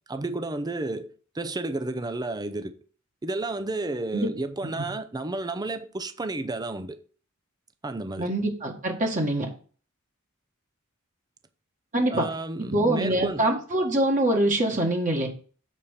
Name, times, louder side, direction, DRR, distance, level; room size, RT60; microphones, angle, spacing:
voice 1, 0.1-2.7 3.2-7.0 7.8-8.3 12.1-13.4, right 2 dB, 20° right, 0.5 m, -31 dB
voice 2, 8.2-9.5 11.9-12.3 12.7-15.3, right 1 dB, 40° right, 1.7 m, -24 dB
7.2 x 4.3 x 6.5 m
head